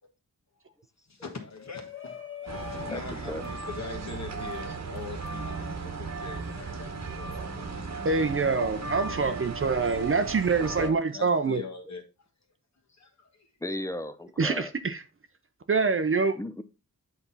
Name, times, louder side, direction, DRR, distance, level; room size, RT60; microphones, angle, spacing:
voice 1, 1.1-8.6 8.9-9.3 11.1-12.0 12.9-13.5, left 5 dB, 60° left, 1.3 m, -43 dB
Shout, 1.4-6.5, left 8 dB, 40° left, 1.6 m, -45 dB
sound 1, 2.5-10.9, right 4 dB, 60° right, 1.3 m, -36 dB
voice 2, 8.0-11.6 14.4-15.0 15.7-16.4, right 4 dB, 40° right, 0.6 m, -25 dB
voice 3, 13.6-14.7 16.4-16.6, left 1 dB, 10° left, 0.6 m, -35 dB
8.1 x 4.3 x 4.0 m
wide cardioid pair, 120°, 32 cm